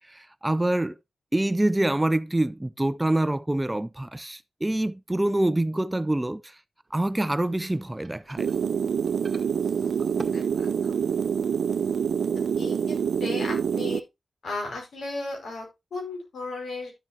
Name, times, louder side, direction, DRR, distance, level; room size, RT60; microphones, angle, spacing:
voice 1, 0.1-1.0 1.3-6.6 6.9-8.5 9.8-9.9, right 1 dB, 15° right, 0.5 m, -26 dB
sound 1, 6.8-11.9, right 3 dB, 30° right, 2.1 m, -47 dB
sound 2, 8.4-14.0, right 7 dB, 85° right, 0.5 m, -26 dB
voice 2, 10.3-10.7 12.6-14.0 14.4-16.9, left 3 dB, 85° left, 5.1 m, -35 dB
12.0 x 7.6 x 2.8 m
wide cardioid pair, 100°, 0 cm